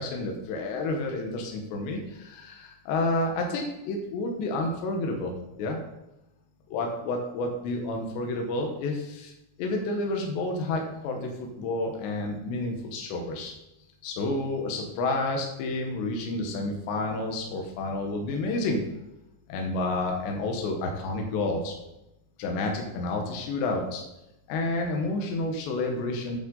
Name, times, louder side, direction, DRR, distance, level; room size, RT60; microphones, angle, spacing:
voice 1, 0.0-5.8 6.7-9.3 9.6-11.3 11.6-13.5 14.0-18.8 19.5-21.7 22.4-24.0 24.5-26.4, left 2 dB, 80° left, 2 dB, 3.3 m, -30 dB
8.9 x 8.7 x 3.9 m, 0.91 s
omnidirectional pair, 5.1 m